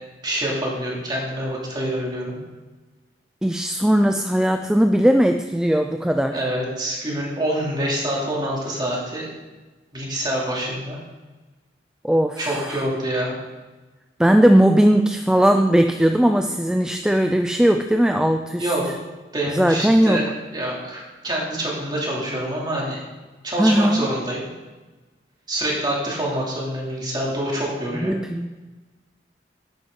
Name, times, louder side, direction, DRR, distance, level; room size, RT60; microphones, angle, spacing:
voice 1, 0.2-2.4 6.3-9.3 9.9-11.0 12.4-13.3 18.6-18.8 19.3-23.0 23.4-24.4 25.5-28.1, right 1 dB, 25° right, -4 dB, 2.8 m, -26 dB
voice 2, 3.4-6.4 12.0-12.8 14.2-18.7 19.5-20.3 23.6-24.1 27.9-28.5, equal, 5° right, 6 dB, 0.3 m, -18 dB
11.0 x 9.0 x 3.8 m, 1.2 s
head